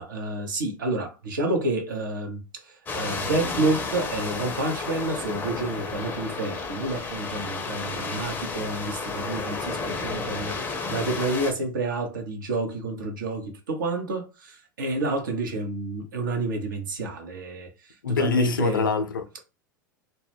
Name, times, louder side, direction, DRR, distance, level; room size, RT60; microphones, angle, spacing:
voice 1, 0.0-18.9, right 2 dB, 70° right, 0.7 m, -29 dB
sound 1, 2.9-11.5, left 4 dB, 15° left, 0.5 m, -32 dB
voice 2, 18.0-19.4, left 6 dB, 80° left, 0.4 m, -25 dB
2.2 x 2.0 x 3.2 m
figure-of-eight pair, 85°, 11 cm